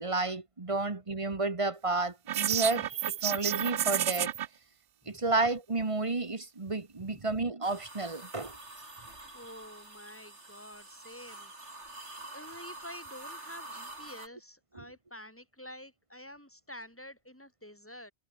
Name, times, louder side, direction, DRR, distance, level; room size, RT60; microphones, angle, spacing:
voice 1, 0.0-4.3 5.1-8.6 14.7-14.8, right 3 dB, 30° right, 1.3 m, -31 dB
sound 1, 2.3-4.5, right 11 dB, 65° right, 0.8 m, -30 dB
sound 2, 7.6-14.3, right 2 dB, 80° right, 5.1 m, -47 dB
voice 2, 9.3-11.5 12.3-18.1, left 1 dB, 10° left, 7.9 m, -49 dB
omnidirectional pair, 1.2 m